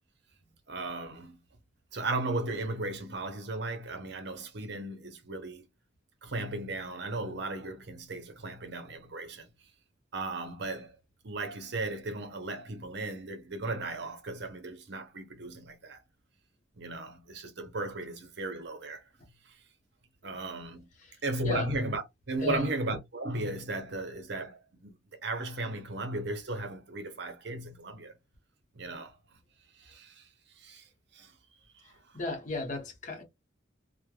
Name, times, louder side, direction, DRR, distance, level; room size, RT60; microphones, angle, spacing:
voice 1, 0.7-1.4 1.9-5.6 6.2-9.5 10.1-10.9 11.2-16.0 16.8-19.0 19.5-19.6 20.2-20.9 21.2-24.9 25.2-28.1 28.7-29.2 29.8-30.3 30.6-30.9 31.1-31.3 31.8-31.9, right 2 dB, 55° right, 0.7 m, -36 dB
voice 2, 32.1-33.2, left 3 dB, 40° left, 0.8 m, -34 dB
3.2 x 2.1 x 2.3 m
head